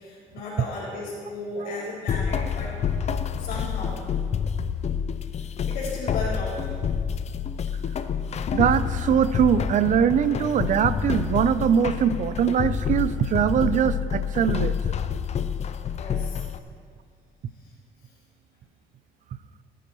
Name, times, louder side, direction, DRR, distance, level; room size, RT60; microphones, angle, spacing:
voice 1, 0.0-2.8 3.4-4.0 5.3-6.7 15.9-16.4 17.6-17.7, left 2 dB, 65° left, -9 dB, 3.0 m, -35 dB
sound 1, 2.1-16.6, left 7 dB, 40° left, 0.6 m, -28 dB
voice 2, 8.5-14.9, right 8 dB, 50° right, 14 dB, 0.5 m, -22 dB
20.0 x 10.0 x 3.1 m, 2.1 s
cardioid pair, 110°, 17 cm